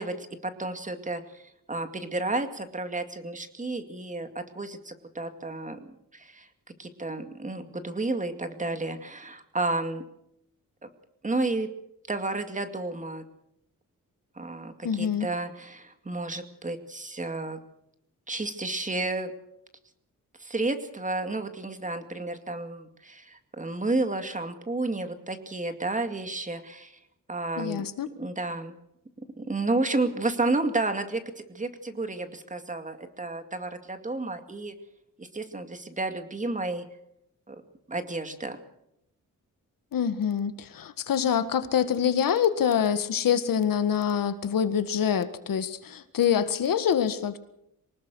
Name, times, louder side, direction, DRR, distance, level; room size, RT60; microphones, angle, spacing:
voice 1, 0.0-5.8 6.1-6.5 6.8-10.0 11.2-11.7 12.1-13.2 14.4-17.6 18.3-19.3 20.4-27.0 27.3-27.9 28.2-28.7 29.4-34.7 35.2-36.8 37.5-37.6 37.9-38.6, right 2 dB, 25° right, 8 dB, 2.3 m, -31 dB
voice 2, 14.8-15.3 27.6-28.1 39.9-47.4, left 8 dB, 85° left, 11 dB, 1.8 m, -25 dB
24.0 x 19.5 x 6.3 m, 0.77 s
wide cardioid pair, 145°, 33 cm